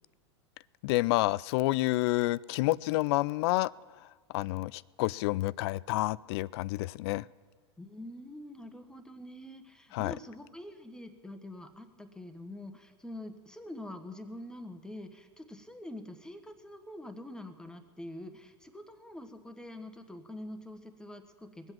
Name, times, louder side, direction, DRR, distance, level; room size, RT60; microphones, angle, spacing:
voice 1, 0.8-3.7 4.3-7.3 9.9-10.1, left 19 dB, 60° left, 22 dB, 0.4 m, -29 dB
voice 2, 7.8-21.7, left 1 dB, 5° left, 8 dB, 1.2 m, -45 dB
21.0 x 8.1 x 7.4 m, 1.5 s
hypercardioid pair, 115°, 15 cm